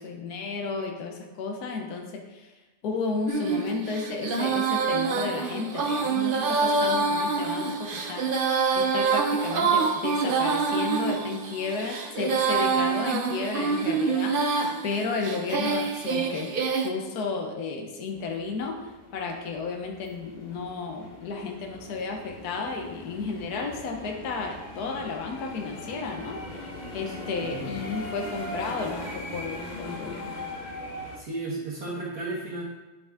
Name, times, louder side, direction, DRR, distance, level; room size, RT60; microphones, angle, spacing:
voice 1, 0.0-2.5 2.8-8.3 8.7-16.5 16.8-30.3, left 4 dB, 60° left, 3 dB, 1.5 m, -33 dB
Female singing, 3.3-16.9, right 5 dB, 75° right, 0.4 m, -26 dB
sound 1, 18.1-31.2, left 1 dB, 35° left, 0.8 m, -40 dB
voice 2, 27.3-27.7 31.2-32.6, right 2 dB, 60° right, -7 dB, 2.0 m, -34 dB
10.0 x 5.4 x 3.6 m, 1.2 s
omnidirectional pair, 2.0 m